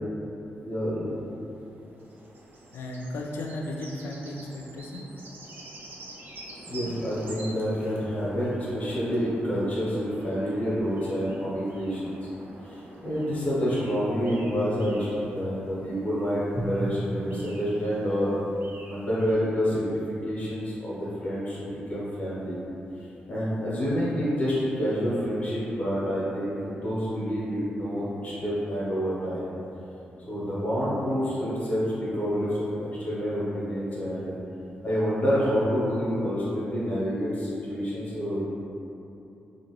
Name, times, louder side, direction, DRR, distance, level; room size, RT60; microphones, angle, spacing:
voice 1, 0.6-1.1 6.7-12.2 12.6-15.1 15.3-18.3 18.9-20.0 20.2-22.6 23.3-29.5 30.3-34.3 34.8-38.4, equal, 40° left, -8 dB, 0.9 m, -28 dB
sound 1, 1.1-19.3, right 1 dB, 60° right, 0.5 m, -47 dB
voice 2, 2.7-5.0, left 1 dB, 85° left, 1 dB, 0.3 m, -35 dB
Drum, 16.6-19.5, right 1 dB, 10° left, 0.6 m, -37 dB
2.9 x 2.6 x 2.9 m, 2.9 s
cardioid pair, 85°, 4 cm